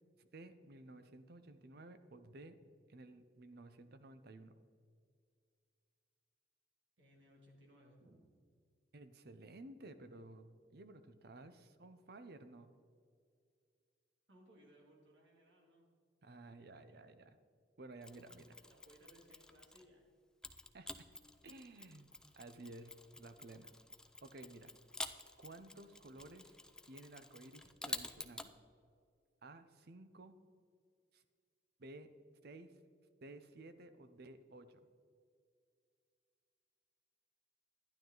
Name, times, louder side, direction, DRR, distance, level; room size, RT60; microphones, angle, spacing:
voice 1, 0.2-2.6 2.9-4.5 8.9-12.7 16.2-17.4 17.8-18.5 20.7-20.9 21.4-22.1 22.4-23.7 24.2-24.7 25.4-26.6 26.9-28.5 29.4-30.4 31.1-31.2 31.8-32.1 32.4-32.7 33.2-34.9, right 2 dB, 60° right, 11 dB, 0.7 m, -54 dB
voice 2, 7.0-8.2 14.3-15.9 16.4-17.0 18.7-20.0, equal, 80° right, -1 dB, 2.4 m, -64 dB
Mechanisms, 18.0-19.9 20.4-28.5, left 2 dB, 5° left, 0.4 m, -50 dB
12.0 x 11.0 x 3.9 m, 2.2 s
head